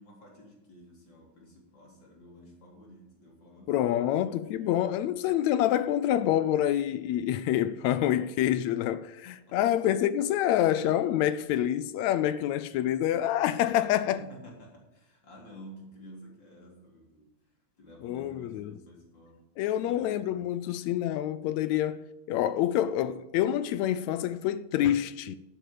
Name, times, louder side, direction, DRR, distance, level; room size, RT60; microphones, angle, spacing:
voice 1, 0.0-3.9 4.4-4.9 9.1-9.6 14.2-17.3 17.8-19.4 19.7-20.3, equal, 40° left, 3.9 m, -51 dB
voice 2, 3.7-14.2 18.0-18.7 19.6-25.4, left 11 dB, 80° left, 1.9 m, -27 dB
11.5 x 9.2 x 8.5 m
omnidirectional pair, 3.4 m